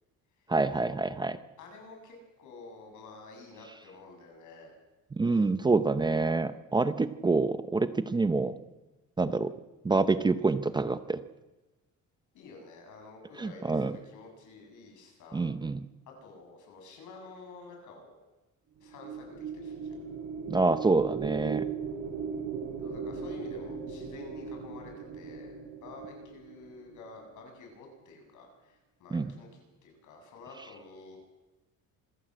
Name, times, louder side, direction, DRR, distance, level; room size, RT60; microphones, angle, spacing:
voice 1, 0.5-1.4 5.1-8.6 9.2-9.5 9.8-11.2 13.4-13.9 15.3-15.9 20.5-21.7 29.1-29.3, right 3 dB, 15° right, 11 dB, 0.7 m, -27 dB
voice 2, 1.6-4.7 12.3-15.4 16.1-18.1 18.8-19.9 22.8-25.5 25.8-31.2, left 3 dB, 75° left, 3 dB, 7.5 m, -50 dB
sound 1, 18.8-27.2, right 6 dB, 60° right, 4.4 m, -38 dB
26.0 x 14.5 x 7.7 m, 1.1 s
cardioid pair, 155°, 30 cm